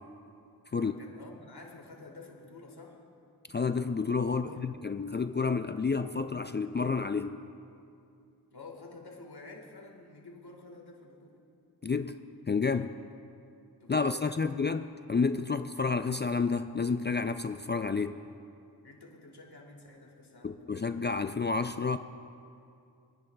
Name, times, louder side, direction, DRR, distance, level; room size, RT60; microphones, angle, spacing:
voice 1, 0.7-3.0 4.2-4.8 8.5-11.4 13.8-14.5 18.8-20.7, left 3 dB, 70° left, 1 dB, 1.7 m, -50 dB
voice 2, 3.5-7.4 11.8-12.2 12.5-13.0 13.9-18.2 20.4-22.0, left 4 dB, 30° left, 9 dB, 0.3 m, -30 dB
25.5 x 10.5 x 2.3 m, 2.5 s
wide cardioid pair, 50°, 40 cm